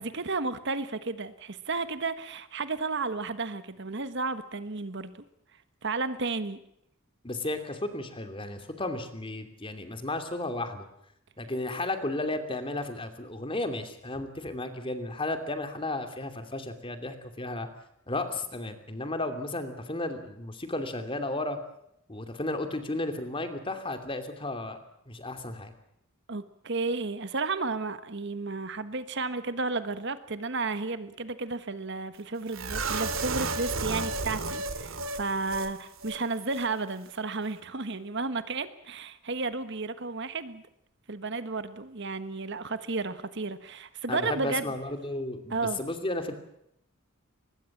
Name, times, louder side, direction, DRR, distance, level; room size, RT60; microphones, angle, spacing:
voice 1, 0.0-5.1 5.8-6.6 26.3-40.6 41.1-44.6 45.5-45.8, right 3 dB, 55° right, 12 dB, 1.4 m, -32 dB
voice 2, 7.2-10.9 11.4-17.7 18.1-21.6 22.1-24.8 25.1-25.7 44.1-46.3, left 2 dB, 25° left, 8 dB, 2.7 m, -33 dB
sound 1, 32.5-35.7 36.0-36.2 36.5-36.6, right 3 dB, 75° right, 2.5 m, -32 dB
24.0 x 20.5 x 7.3 m, 0.75 s
head